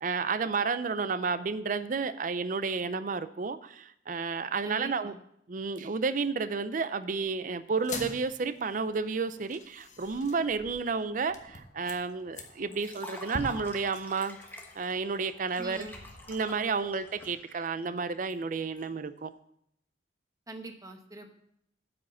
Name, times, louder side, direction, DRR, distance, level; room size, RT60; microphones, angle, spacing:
voice 1, 0.0-5.1 5.5-14.4 14.8-15.9 16.3-19.3, right 4 dB, 45° right, 13 dB, 0.5 m, -31 dB
voice 2, 4.6-5.2 15.6-16.0 20.5-21.3, right 2 dB, 20° right, 6 dB, 0.9 m, -43 dB
sound 1, 7.7-17.3, left 2 dB, 40° left, 1.1 m, -46 dB
Liquid, 12.7-18.8, left 2 dB, 10° left, 1.3 m, -48 dB
9.1 x 5.1 x 7.1 m, 0.74 s
head